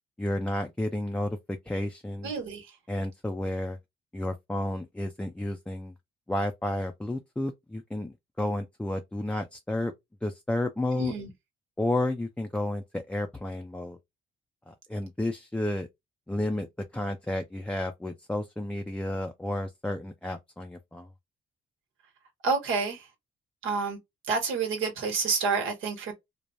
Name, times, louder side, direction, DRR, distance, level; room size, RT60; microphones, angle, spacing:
voice 1, 0.2-2.3 2.9-3.8 4.1-5.9 6.3-9.9 10.2-11.1 11.8-14.0 14.7-15.9 16.3-16.7 16.9-21.1, left 1 dB, 5° left, 0.4 m, -31 dB
voice 2, 2.2-2.7 10.9-11.3 22.4-23.0 23.6-24.0 24.3-26.1, right 4 dB, 90° right, 1.2 m, -28 dB
3.1 x 2.1 x 2.4 m
cardioid pair, 90°, 20 cm